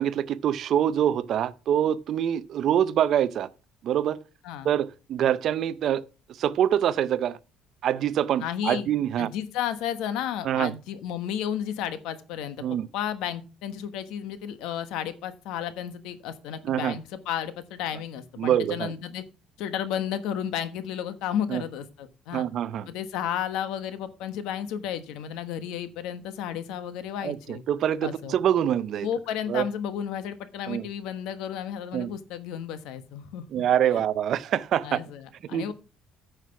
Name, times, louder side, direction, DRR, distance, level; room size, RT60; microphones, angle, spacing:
voice 1, 0.0-3.5 3.8-4.2 4.6-6.0 6.4-7.4 7.8-9.3 10.4-10.7 12.6-12.9 16.6-16.9 18.4-18.9 21.5-21.6 22.3-22.9 27.2-29.1 29.5-29.7 30.7-30.8 31.9-32.1 33.5-35.0 35.5-35.7, right 10 dB, 50° right, 0.5 m, -25 dB
voice 2, 8.4-8.9 9.2-12.6 12.9-19.2 19.6-22.5 22.9-27.6 28.0-28.4 29.0-33.6 34.8-35.7, left 9 dB, 85° left, 1.2 m, -33 dB
9.3 x 5.9 x 5.7 m
cardioid pair, 155°, 0 cm